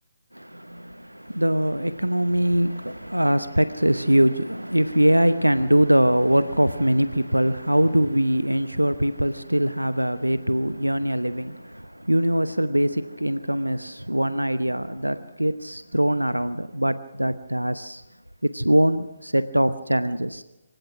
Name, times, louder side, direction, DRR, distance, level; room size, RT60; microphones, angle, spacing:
voice 1, 0.3-18.0 18.4-20.4, equal, 85° right, 0.9 m, -22 dB
27.0 x 17.0 x 6.1 m
figure-of-eight pair, 140°, 0 cm